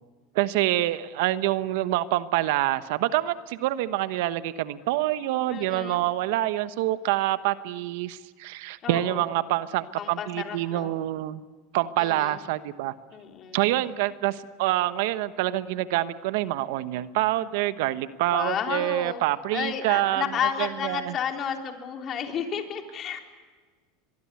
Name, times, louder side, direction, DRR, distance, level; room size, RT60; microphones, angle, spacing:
voice 1, 0.3-11.4 11.7-12.9 13.5-20.2 20.6-21.1, right 15 dB, 70° right, 13 dB, 1.0 m, -26 dB
voice 2, 5.5-6.0 8.8-9.3 10.0-10.9 12.0-12.4 13.1-13.6 18.3-19.3 19.5-23.2, left 8 dB, 40° left, 3 dB, 3.8 m, -32 dB
23.0 x 23.0 x 8.4 m, 1.4 s
supercardioid pair, 110°, 0 cm